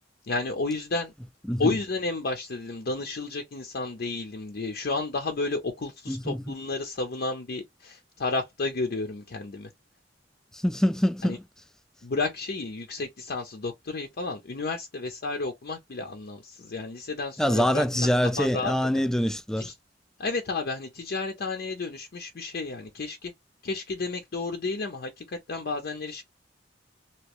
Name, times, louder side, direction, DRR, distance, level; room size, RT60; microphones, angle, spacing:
voice 1, 0.3-1.1 1.6-9.7 11.2-11.4 12.0-18.7 19.6-19.7 20.2-23.3 23.6-26.2, left 3 dB, 55° left, 0.6 m, -32 dB
voice 2, 6.1-6.4 10.6-11.4 17.4-19.7, equal, 5° left, 0.3 m, -24 dB
3.0 x 2.8 x 3.0 m
head